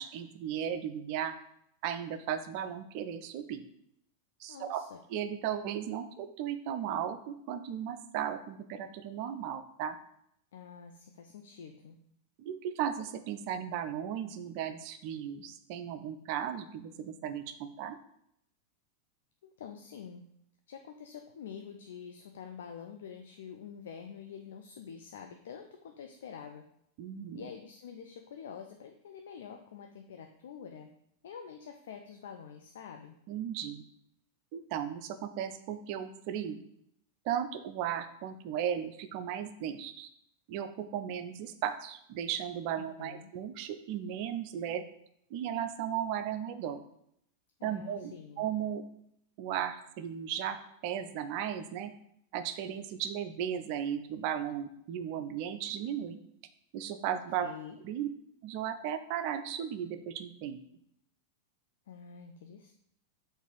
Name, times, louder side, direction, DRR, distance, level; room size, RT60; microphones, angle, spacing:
voice 1, 0.0-1.4 1.8-3.6 4.4-4.8 5.1-10.0 12.4-18.0 27.0-27.5 33.3-33.8 34.5-36.6 37.2-40.1 40.5-44.8 45.3-46.8 47.6-48.8 49.4-50.6 50.8-51.9 52.3-56.2 56.7-57.5 57.8-58.1 58.4-60.6, right 9 dB, 45° right, 10 dB, 0.4 m, -36 dB
voice 2, 4.5-5.0 10.5-12.0 19.4-20.2 20.7-26.6 27.3-30.9 31.2-33.2 42.8-43.3 47.6-48.5 57.1-57.8 61.9-62.7, left 7 dB, 65° left, 5 dB, 0.3 m, -47 dB
3.9 x 2.6 x 4.5 m, 0.73 s
figure-of-eight pair, 90°, 0 cm